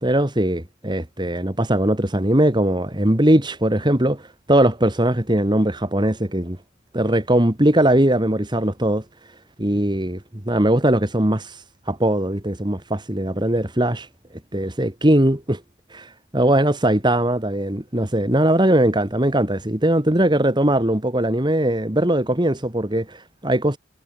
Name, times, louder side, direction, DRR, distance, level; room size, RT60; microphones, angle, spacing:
voice 1, 0.0-6.6 6.9-9.0 9.6-14.1 14.5-15.6 15.9-23.8, right 1 dB, 25° right, 2.1 m, -20 dB
head